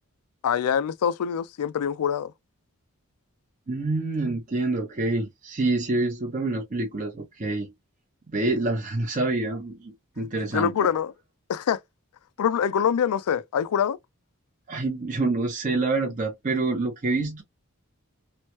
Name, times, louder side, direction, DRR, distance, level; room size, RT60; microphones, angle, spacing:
voice 1, 0.4-2.3 10.2-11.1 11.5-11.8 12.4-14.0, left 8 dB, 90° left, 0.4 m, -25 dB
voice 2, 3.7-7.7 8.3-10.9 14.7-17.4, right 2 dB, 35° right, 0.6 m, -27 dB
3.0 x 2.1 x 2.9 m
head